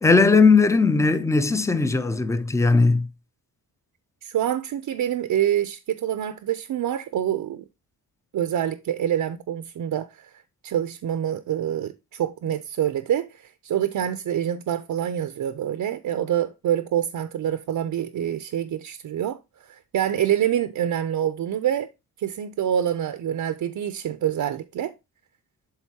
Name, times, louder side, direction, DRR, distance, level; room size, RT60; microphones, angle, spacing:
voice 1, 0.0-3.1, left 4 dB, 10° left, 0.4 m, -18 dB
voice 2, 4.2-7.6 8.3-10.3 10.6-19.4 19.7-21.9 22.2-24.9, right 10 dB, 55° right, 0.6 m, -26 dB
12.0 x 3.9 x 2.8 m
wide cardioid pair, 160°, 38 cm